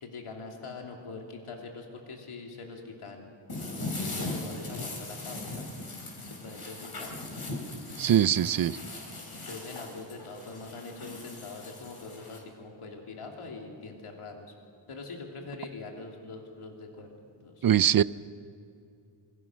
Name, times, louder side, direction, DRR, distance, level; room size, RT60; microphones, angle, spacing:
voice 1, 0.0-3.3 3.8-5.7 6.2-7.1 9.3-14.5 14.9-17.1 17.4-17.7, left 3 dB, 85° left, 1 dB, 3.2 m, -43 dB
sound 1, 3.5-12.4, left 2 dB, 45° left, 4.8 m, -39 dB
voice 2, 8.0-8.8 17.6-18.0, right 10 dB, 45° right, 18 dB, 0.5 m, -22 dB
27.5 x 24.0 x 6.2 m, 2.5 s
wide cardioid pair, 140°, 50 cm